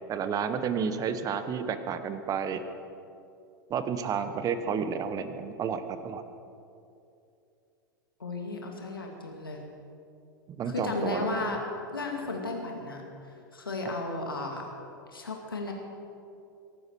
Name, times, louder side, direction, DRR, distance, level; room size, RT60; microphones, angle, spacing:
voice 1, 0.1-2.6 3.7-6.2 10.5-11.6, right 6 dB, 30° right, 10 dB, 1.3 m, -31 dB
voice 2, 8.2-9.6 10.7-11.6 11.9-13.0 13.5-14.6 15.1-15.7, left 3 dB, 90° left, 1 dB, 2.4 m, -34 dB
23.5 x 12.0 x 4.7 m, 2.6 s
hypercardioid pair, 95°, 11 cm